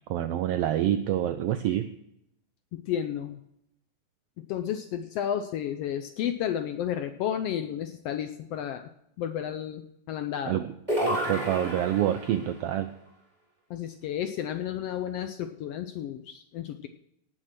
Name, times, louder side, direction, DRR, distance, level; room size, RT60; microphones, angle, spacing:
voice 1, 0.1-1.9 10.4-10.7 11.0-12.9, right 12 dB, 90° right, 10 dB, 1.3 m, -27 dB
voice 2, 2.7-3.4 4.5-8.9 9.2-10.6 13.7-16.9, left 10 dB, 80° left, 8 dB, 1.4 m, -32 dB
sound 1, 10.9-12.4, equal, 15° right, 4.7 m, -30 dB
17.5 x 6.4 x 6.0 m, 0.80 s
omnidirectional pair, 3.3 m